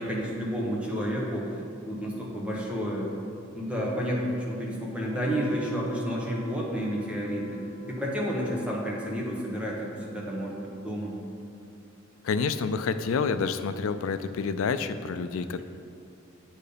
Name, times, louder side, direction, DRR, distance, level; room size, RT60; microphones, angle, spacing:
voice 1, 0.0-3.1 3.5-7.6 7.9-11.2, equal, 5° right, -3 dB, 1.1 m, -30 dB
sound 1, 5.1-9.3, right 1 dB, 15° left, 0.8 m, -47 dB
voice 2, 12.2-15.6, left 5 dB, 90° left, 11 dB, 0.4 m, -28 dB
8.4 x 4.5 x 5.1 m, 2.6 s
head